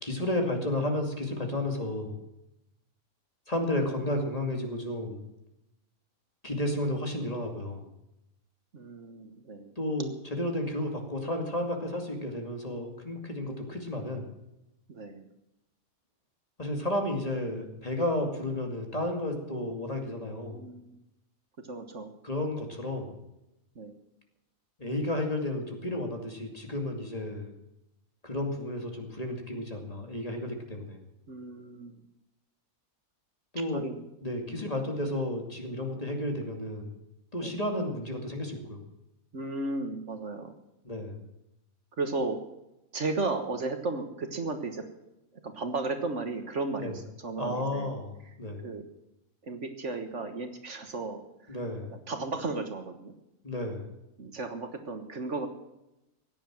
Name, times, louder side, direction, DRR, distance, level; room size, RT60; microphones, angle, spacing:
voice 1, 0.0-2.2 3.5-5.2 6.4-7.9 9.8-14.3 16.6-20.6 22.2-23.2 24.8-27.5 28.2-31.0 33.5-33.8 34.2-36.9 37.3-38.8 40.8-41.2 46.8-46.9 47.4-48.7 51.5-51.9 53.4-53.9, left 1 dB, 25° left, 3 dB, 2.5 m, -32 dB
voice 2, 8.7-9.7 14.9-15.3 20.5-20.9 21.6-22.1 23.7-23.9 31.3-32.0 33.7-34.0 34.5-34.6 37.4-37.5 39.3-40.5 42.0-42.4 42.9-44.8 45.4-47.9 48.6-48.9 49.4-51.2 51.5-51.6 52.1-53.1 54.2-55.5, right 3 dB, 55° right, 7 dB, 1.7 m, -34 dB
16.5 x 10.0 x 7.5 m, 0.90 s
omnidirectional pair, 1.5 m